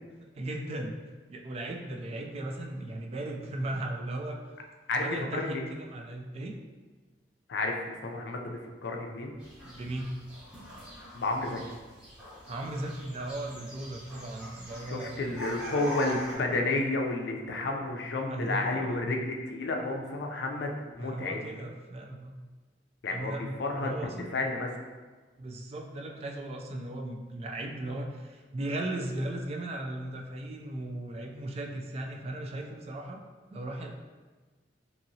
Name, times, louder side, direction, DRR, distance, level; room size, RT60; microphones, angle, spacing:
voice 1, 0.3-1.0 1.3-4.4 5.0-6.6 9.6-10.1 12.5-15.2 15.5-15.6 18.3-19.1 21.0-22.4 23.1-24.4 25.4-33.2 33.5-33.9, right 1 dB, 35° right, 1 dB, 0.3 m, -37 dB
voice 2, 4.9-5.7 7.5-9.3 11.1-11.7 14.8-21.5 23.0-23.9 24.3-24.7, left 2 dB, 70° left, 2 dB, 0.4 m, -31 dB
sound 1, 9.4-16.3, left 1 dB, 5° right, 0.8 m, -43 dB
2.9 x 2.8 x 2.6 m, 1.3 s
head